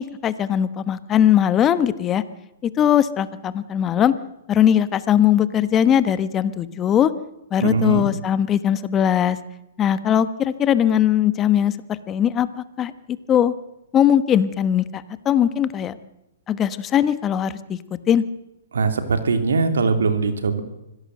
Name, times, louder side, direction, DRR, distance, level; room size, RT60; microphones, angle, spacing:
voice 1, 0.0-2.2 2.6-4.1 4.5-7.1 7.5-9.4 9.8-11.7 12.1-13.5 13.9-16.0 16.5-17.8 18.1-18.2, left 9 dB, 20° left, 14 dB, 1.2 m, -20 dB
voice 2, 7.6-8.1 18.7-20.6, right 4 dB, 85° right, 8 dB, 3.1 m, -21 dB
25.0 x 16.5 x 7.8 m, 0.92 s
hypercardioid pair, 140°, 0 cm